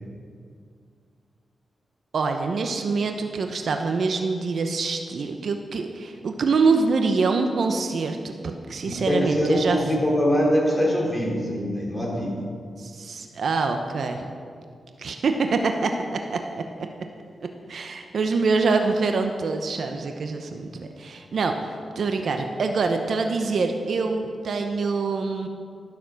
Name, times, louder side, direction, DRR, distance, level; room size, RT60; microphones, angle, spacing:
voice 1, 2.1-9.8 12.8-14.3 15.0-16.6 17.7-25.5, right 4 dB, 65° right, 5 dB, 0.8 m, -25 dB
voice 2, 9.1-12.4, equal, 10° left, -3 dB, 3.6 m, -23 dB
13.0 x 6.9 x 6.4 m, 2.2 s
cardioid pair, 75°, 0 cm